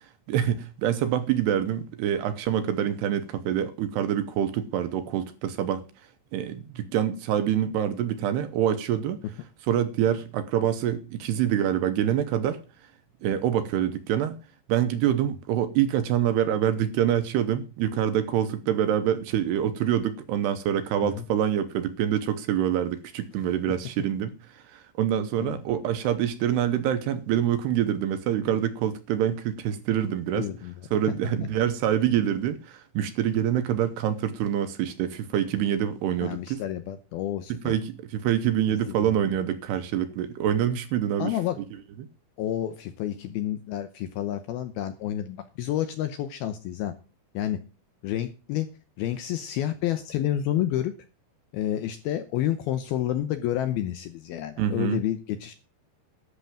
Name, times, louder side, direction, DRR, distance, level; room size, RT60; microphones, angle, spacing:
voice 1, 0.3-5.8 6.3-9.2 9.7-12.6 13.2-14.4 14.7-30.5 30.9-36.6 37.5-41.3 42.0-42.1 54.6-55.0, right 10 dB, 75° right, 2.7 m, -26 dB
voice 2, 30.3-30.8 36.2-37.7 38.7-39.1 41.2-41.6 42.4-46.9 47.3-47.6 48.0-48.7 49.0-50.9 51.5-55.5, left 12 dB, 75° left, 2.3 m, -29 dB
11.5 x 6.9 x 7.7 m
omnidirectional pair, 5.3 m